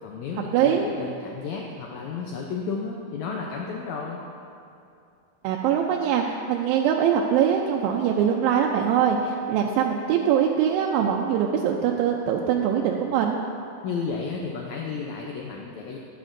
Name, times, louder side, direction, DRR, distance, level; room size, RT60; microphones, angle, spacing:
voice 1, 0.0-4.2 13.8-16.0, left 5 dB, 75° left, -1 dB, 1.7 m, -32 dB
voice 2, 0.5-0.9 5.4-13.4, right 8 dB, 90° right, 0 dB, 2.4 m, -22 dB
13.5 x 11.5 x 2.6 m, 2.6 s
omnidirectional pair, 4.1 m